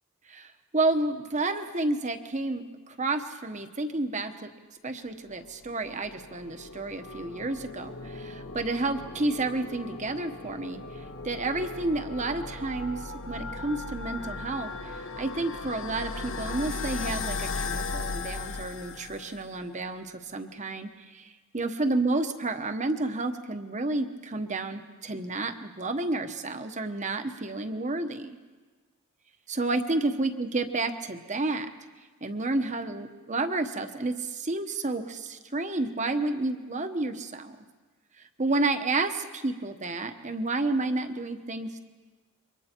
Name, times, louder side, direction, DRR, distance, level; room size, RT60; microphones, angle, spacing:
voice 1, 0.3-4.5 4.8-10.8 11.2-28.3 29.5-31.7 32.2-37.6 38.2-41.7, right 2 dB, 35° right, 8 dB, 1.1 m, -30 dB
sound 1, 5.4-19.6, left 3 dB, 60° left, 1.1 m, -37 dB
28.0 x 23.5 x 4.5 m, 1.3 s
head